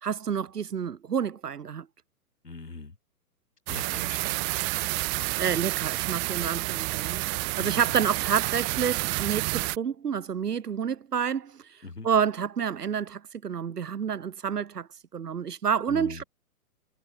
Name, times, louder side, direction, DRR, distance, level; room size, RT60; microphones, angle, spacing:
voice 1, 0.0-1.9 4.9-7.3 7.6-11.6 12.0-16.2, right 7 dB, 80° right, 1.0 m, -29 dB
voice 2, 2.4-3.0 3.7-4.3 7.6-7.8 11.8-12.1 15.9-16.2, left 3 dB, 85° left, 4.1 m, -41 dB
sound 1, 3.7-9.8, right 34 dB, 25° right, 1.0 m, -29 dB
figure-of-eight pair, 120°, 46 cm